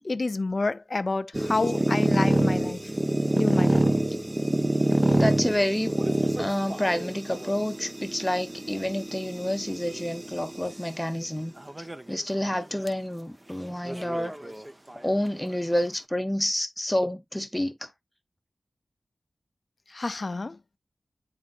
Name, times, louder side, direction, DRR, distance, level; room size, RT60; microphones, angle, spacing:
voice 1, 0.0-2.8 3.4-3.9 19.9-20.6, left 3 dB, 45° left, 0.5 m, -29 dB
sound 1, 1.3-10.8 11.6-12.1 12.5-12.6 12.9-13.0 13.9-15.0, right 1 dB, 20° right, 0.7 m, -26 dB
voice 2, 5.1-5.9 6.4-14.3 14.9-17.9, left 1 dB, 10° left, 0.9 m, -29 dB
9.5 x 4.0 x 2.5 m
wide cardioid pair, 75°, 0 cm